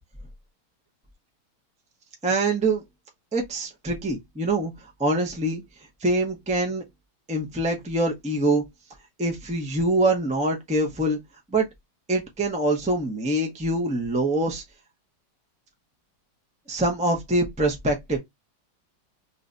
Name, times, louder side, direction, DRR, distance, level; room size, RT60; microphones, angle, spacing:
voice 1, 2.2-2.8 3.3-5.6 6.0-6.8 7.3-8.6 9.2-11.2 11.5-11.7 12.1-14.6 16.7-18.2, right 2 dB, 10° right, 0.4 m, -24 dB
3.2 x 3.1 x 2.6 m
omnidirectional pair, 2.2 m